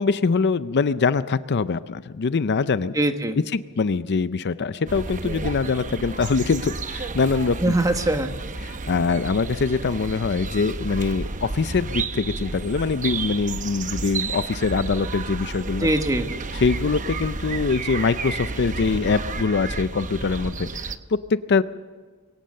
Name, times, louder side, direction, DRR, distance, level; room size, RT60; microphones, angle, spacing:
voice 1, 0.0-2.9 3.5-7.7 8.6-15.9 16.5-21.6, left 4 dB, 50° left, 14 dB, 0.5 m, -23 dB
voice 2, 2.9-3.4 7.6-8.3 15.8-16.3, right 1 dB, 15° right, 7 dB, 1.3 m, -22 dB
sound 1, 4.9-21.0, right 3 dB, 35° right, 0.8 m, -31 dB
22.5 x 18.0 x 6.5 m, 1.5 s
head